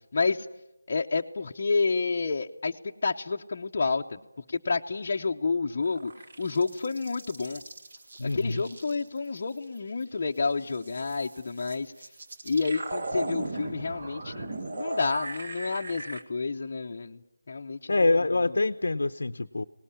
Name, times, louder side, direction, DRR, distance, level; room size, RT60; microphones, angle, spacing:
voice 1, 0.1-0.5 0.9-4.2 4.5-6.1 6.4-7.6 8.2-11.9 12.4-17.2 17.5-17.9, left 4 dB, 35° left, 1 dB, 0.8 m, -29 dB
sound 1, 5.8-10.0 10.4-16.2, right 2 dB, 45° right, 1.6 m, -38 dB
voice 2, 8.2-8.6 17.9-19.6, left 3 dB, 65° left, 9 dB, 0.8 m, -25 dB
20.5 x 19.0 x 10.0 m, 0.87 s
figure-of-eight pair, 175°, 0 cm